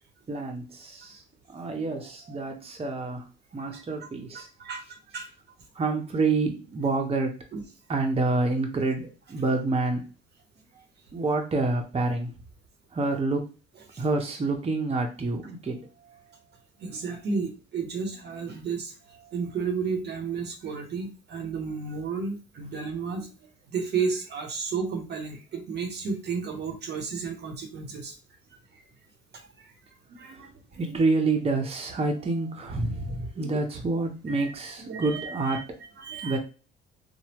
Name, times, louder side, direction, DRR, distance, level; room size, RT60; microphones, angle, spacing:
voice 1, 0.3-1.2 1.5-4.5 5.7-7.4 7.9-10.0 11.1-12.3 12.9-13.5 14.0-16.2 19.3-19.4 30.3-30.4 30.8-35.7 36.2-36.4, right 3 dB, 30° right, 2 dB, 0.9 m, -28 dB
voice 2, 4.3-5.3 7.5-7.6 13.9-14.0 16.8-18.9 19.3-23.3 23.7-28.1 28.7-28.8 29.3-29.8 30.1-30.8 33.4-33.5 34.3-34.5 34.8-35.6 36.0-36.4, right 5 dB, 50° right, 4 dB, 0.9 m, -33 dB
3.3 x 2.0 x 3.0 m, 0.33 s
supercardioid pair, 65°, 21 cm